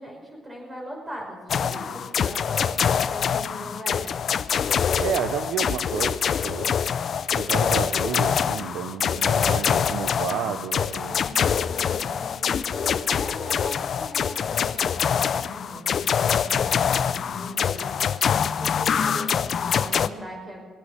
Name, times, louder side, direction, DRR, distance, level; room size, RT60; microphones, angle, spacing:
voice 1, 0.0-4.0 11.1-18.2 18.6-20.6, equal, 20° right, 0 dB, 5.2 m, -40 dB
sound 1, 1.5-20.1, left 7 dB, 55° left, 0.5 m, -24 dB
voice 2, 5.0-6.7 7.4-11.2 16.6-16.7, right 9 dB, 85° right, 11 dB, 0.6 m, -31 dB
21.0 x 8.2 x 6.5 m, 1.5 s
cardioid pair, 90°, 0 cm